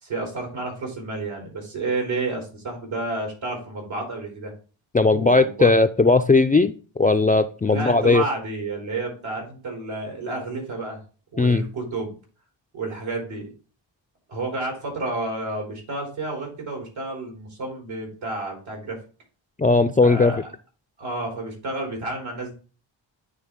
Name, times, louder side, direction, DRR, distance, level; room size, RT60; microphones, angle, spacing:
voice 1, 0.0-4.5 5.1-5.7 7.7-11.0 11.3-12.1 12.7-13.5 14.3-19.0 20.0-20.5 21.0-22.5, right 2 dB, 80° right, 1 dB, 3.7 m, -30 dB
voice 2, 4.9-8.2 11.4-11.6 19.6-20.3, left 3 dB, 20° left, 7 dB, 0.4 m, -18 dB
9.3 x 3.4 x 3.7 m, 0.36 s
cardioid pair, 70°, 47 cm